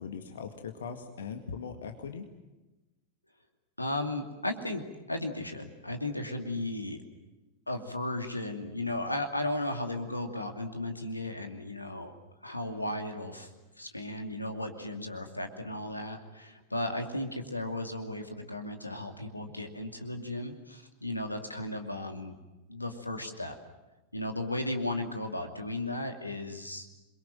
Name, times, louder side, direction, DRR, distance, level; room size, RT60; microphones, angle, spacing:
voice 1, 0.0-2.3, left 6 dB, 65° left, 6 dB, 2.0 m, -40 dB
voice 2, 3.8-7.0 7.7-12.1 12.4-13.5 13.8-22.3 22.7-23.6 24.1-26.9, left 1 dB, 85° left, 5 dB, 2.6 m, -35 dB
28.0 x 22.5 x 7.6 m, 1.1 s
figure-of-eight pair, 90°, 0 cm